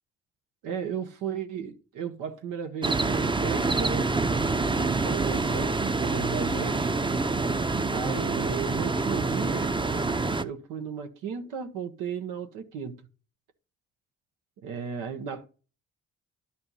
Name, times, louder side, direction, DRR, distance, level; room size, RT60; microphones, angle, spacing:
voice 1, 0.6-4.1 4.7-6.9 7.9-9.7 10.4-13.0 14.6-15.5, right 7 dB, 85° right, 1.0 m, -35 dB
sound 1, 2.8-10.4, right 3 dB, 15° right, 0.7 m, -26 dB
11.5 x 4.4 x 5.5 m
supercardioid pair, 55°, 31 cm